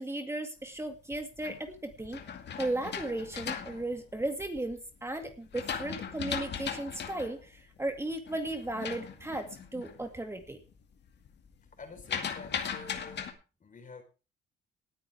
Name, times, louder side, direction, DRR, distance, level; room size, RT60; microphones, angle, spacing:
voice 1, 0.0-2.2 2.6-9.5 9.7-10.6, right 1 dB, 15° right, 5 dB, 2.3 m, -35 dB
sound 1, 0.9-4.7 5.2-10.1 10.4-10.8 11.1-13.3, left 7 dB, 60° left, 2.3 m, -38 dB
voice 2, 11.8-13.3 13.6-14.0, left 4 dB, 40° left, 6 dB, 4.2 m, -48 dB
19.0 x 9.3 x 3.5 m, 0.32 s
cardioid pair, 90°, 20 cm